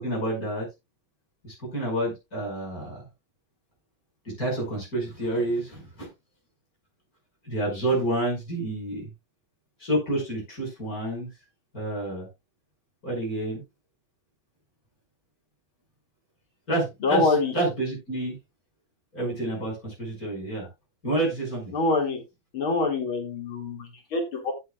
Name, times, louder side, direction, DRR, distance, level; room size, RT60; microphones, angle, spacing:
voice 1, 0.0-0.7 1.4-3.0 4.2-6.1 7.4-9.1 9.8-11.3 11.7-12.3 13.0-13.6 16.7-18.4 19.1-20.7 21.0-21.7, right 1 dB, 45° left, -2 dB, 6.2 m, -29 dB
voice 2, 17.0-17.5 21.7-22.2 22.5-24.5, left 3 dB, 75° left, 2 dB, 3.3 m, -25 dB
16.0 x 6.6 x 2.4 m, 0.23 s
omnidirectional pair, 2.3 m